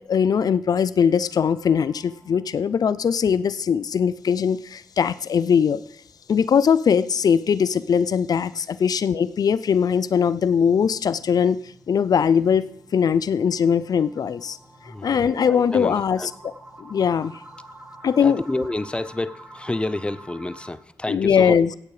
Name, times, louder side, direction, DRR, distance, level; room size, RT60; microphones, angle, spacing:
voice 1, 0.1-5.8 6.3-11.6 11.9-12.6 12.9-14.6 14.9-16.2 16.8-17.3 18.0-18.4 21.1-21.7, left 7 dB, 70° left, 16 dB, 0.5 m, -20 dB
sound 1, 1.1-2.6 3.0-3.1 3.4-3.5 4.0-4.1 8.9-20.7, right 1 dB, 25° right, 5.9 m, -48 dB
voice 2, 14.8-16.3 18.2-21.6, left 2 dB, 15° left, 14 dB, 0.6 m, -29 dB
16.5 x 8.5 x 4.8 m, 0.72 s
cardioid pair, 70°, 7 cm